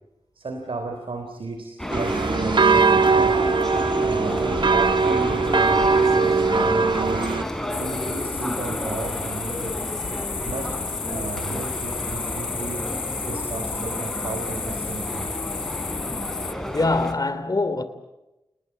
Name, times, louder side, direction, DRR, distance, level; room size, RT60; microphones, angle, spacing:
voice 1, 0.3-3.4 4.0-7.3 7.8-9.8 10.0-12.8 13.2-15.3, right 3 dB, 80° right, 3.3 m, -34 dB
sound 1, 1.8-17.1, equal, 5° left, 4.8 m, -31 dB
sound 2, 1.9-7.4, right 4 dB, 60° right, 1.5 m, -20 dB
sound 3, 7.7-16.5, left 5 dB, 75° left, 0.8 m, -32 dB
voice 2, 16.5-17.8, left 2 dB, 45° left, 2.9 m, -24 dB
29.0 x 19.5 x 8.8 m
cardioid pair, 50°, 9 cm